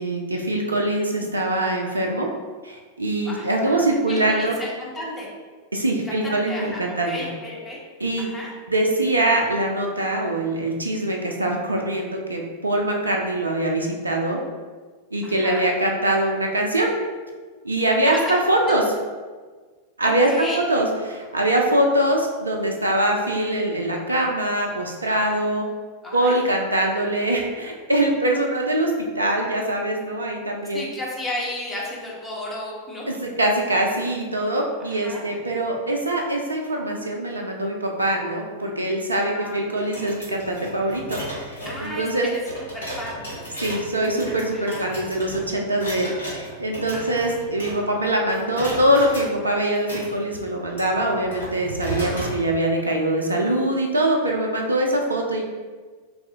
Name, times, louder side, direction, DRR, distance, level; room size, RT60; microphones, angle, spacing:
voice 1, 0.0-2.3 2.6-4.5 5.7-7.1 8.0-8.3 8.7-14.4 15.1-16.9 17.6-18.8 20.0-25.7 26.1-30.9 33.1-42.3 43.6-55.4, right 1 dB, 80° right, 1 dB, 0.4 m, -23 dB
voice 2, 3.2-5.3 6.0-7.8 8.2-8.5 15.2-15.6 18.1-18.2 20.0-20.6 26.0-26.4 30.7-33.0 34.8-35.2 39.2-39.7 41.6-42.3 42.7-43.2 44.4-45.0 46.9-47.4, left 1 dB, 10° left, -5 dB, 0.9 m, -34 dB
sound 1, 39.8-48.0 48.3-49.3 49.7-52.4, equal, 70° left, 1.1 m, -35 dB
4.0 x 2.4 x 2.7 m, 1.4 s
figure-of-eight pair, 90°, 0 cm